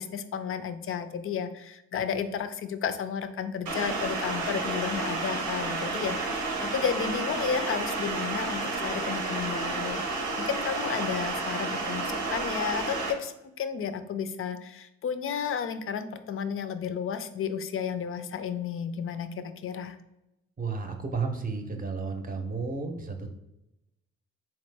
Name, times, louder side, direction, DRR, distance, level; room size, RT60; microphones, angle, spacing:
voice 1, 0.0-10.0 10.4-19.3 19.6-20.0, left 7 dB, 45° left, 10 dB, 0.4 m, -32 dB
sound 1, 3.7-13.1, right 3 dB, 90° right, 0.8 m, -31 dB
voice 2, 20.6-23.3, right 4 dB, 30° right, 4 dB, 0.7 m, -32 dB
3.8 x 3.0 x 3.3 m, 0.88 s
cardioid pair, 90°, 30 cm